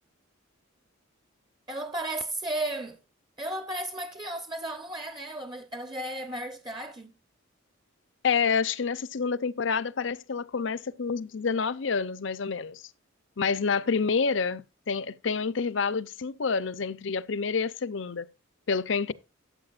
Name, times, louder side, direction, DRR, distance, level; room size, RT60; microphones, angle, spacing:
voice 1, 1.7-3.0 3.4-7.1, right 1 dB, 20° right, 0.8 m, -34 dB
voice 2, 8.2-12.8 13.4-18.3 18.7-19.1, left 5 dB, 65° left, 0.6 m, -28 dB
13.5 x 8.3 x 2.4 m
head